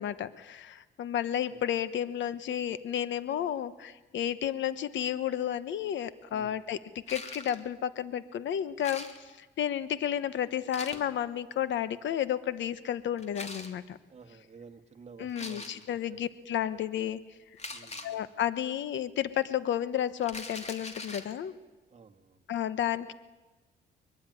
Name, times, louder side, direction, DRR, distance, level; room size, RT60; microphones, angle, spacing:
voice 1, 0.0-14.0 15.2-17.2 18.0-21.5 22.5-23.1, left 10 dB, 70° left, 14 dB, 1.1 m, -32 dB
sound 1, 7.1-7.7 8.8-9.4 10.7-11.1 13.2-13.7 15.3-15.9 17.6-18.1 20.2-21.3, left 3 dB, 35° left, 3.3 m, -42 dB
voice 2, 14.1-16.2 17.7-18.2 21.9-22.4, right 5 dB, 35° right, 3 dB, 2.2 m, -52 dB
23.5 x 22.0 x 9.7 m, 1.2 s
cardioid pair, 90°, 20 cm